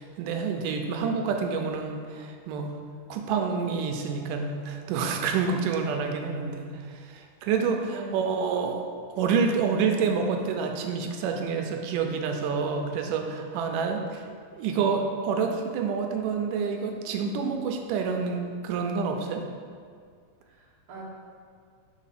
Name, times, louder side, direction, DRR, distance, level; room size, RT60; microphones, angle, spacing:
voice 1, 0.0-2.7 3.1-8.9 9.1-14.3 14.5-19.4, right 5 dB, 85° right, 4 dB, 2.2 m, -28 dB
voice 2, 7.9-8.5 20.4-21.0, right 3 dB, 45° right, -6 dB, 1.2 m, -42 dB
5.0 x 4.4 x 5.6 m, 2.1 s
omnidirectional pair, 3.7 m